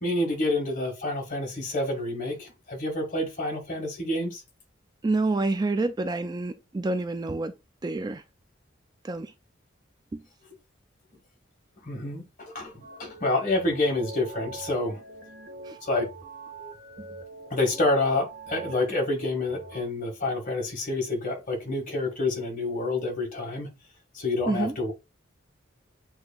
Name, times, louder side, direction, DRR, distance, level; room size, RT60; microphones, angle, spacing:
voice 1, 0.0-4.4 11.8-15.0 15.8-16.1 17.5-23.8 24.1-24.9, left 2 dB, 45° left, 1.6 m, -28 dB
voice 2, 5.0-7.5 7.8-8.2 9.0-9.3 10.1-10.2 15.6-15.8 17.0-17.1 24.5-24.8, right 2 dB, 20° right, 0.3 m, -28 dB
sound 1, 12.8-19.8, right 3 dB, 45° right, 1.2 m, -44 dB
7.8 x 2.8 x 2.3 m
head